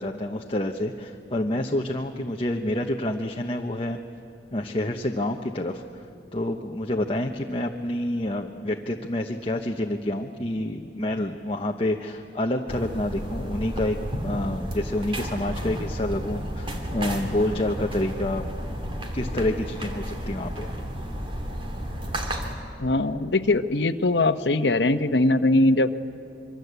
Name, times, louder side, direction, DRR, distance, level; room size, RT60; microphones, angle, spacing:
voice 1, 0.0-4.0 4.5-5.8 6.3-14.0 14.2-18.5 19.1-20.7, left 1 dB, 30° left, 3 dB, 1.0 m, -28 dB
sound 1, 12.7-22.5, equal, 30° right, 2.6 m, -32 dB
voice 2, 22.8-25.9, left 2 dB, 75° left, 10 dB, 1.0 m, -21 dB
26.0 x 24.0 x 8.2 m, 2.6 s
head